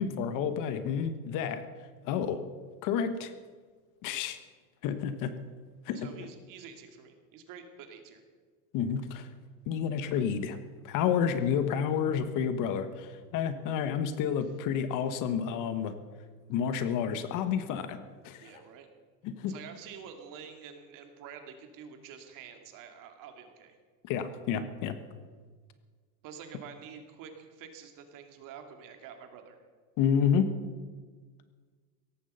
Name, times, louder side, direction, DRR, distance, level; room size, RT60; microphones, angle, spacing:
voice 1, 0.0-1.7 2.0-2.4 2.8-3.3 4.0-4.4 4.8-5.3 5.8-6.3 8.7-9.3 9.7-10.6 10.8-15.9 16.5-18.0 18.2-18.5 19.2-19.6 24.0-24.9 30.0-30.6, left 7 dB, 40° left, 10 dB, 1.3 m, -30 dB
voice 2, 5.9-8.2 18.4-18.9 19.5-23.8 26.2-29.6, right 7 dB, 40° right, 5 dB, 2.6 m, -48 dB
17.5 x 14.5 x 5.6 m, 1.5 s
supercardioid pair, 140°, 47 cm